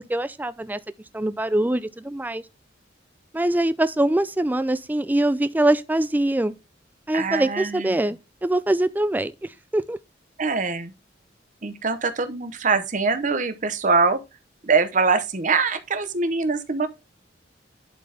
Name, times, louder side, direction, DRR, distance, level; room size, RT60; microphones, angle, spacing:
voice 1, 0.1-0.8 1.1-2.4 3.3-6.6 7.1-10.0, right 1 dB, 10° right, 0.4 m, -23 dB
voice 2, 7.1-7.9 10.4-10.9 11.6-14.2 14.6-16.9, right 4 dB, 40° right, 0.8 m, -23 dB
11.0 x 4.1 x 3.4 m
head